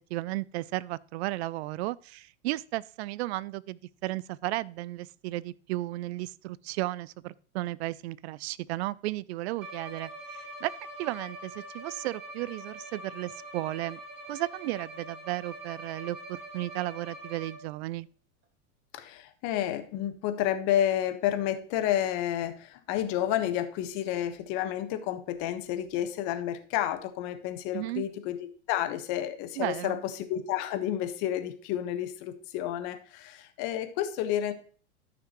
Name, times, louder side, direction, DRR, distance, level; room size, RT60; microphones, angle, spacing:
voice 1, 0.1-10.7 11.0-14.0 14.3-18.1 27.7-28.1 29.6-30.0, right 17 dB, 65° right, 0.6 m, -34 dB
Bowed string instrument, 9.6-17.9, right 1 dB, 30° right, 5.0 m, -44 dB
voice 2, 18.9-34.5, left 11 dB, 50° left, 1.4 m, -30 dB
13.5 x 5.9 x 3.1 m
hypercardioid pair, 100°, 36 cm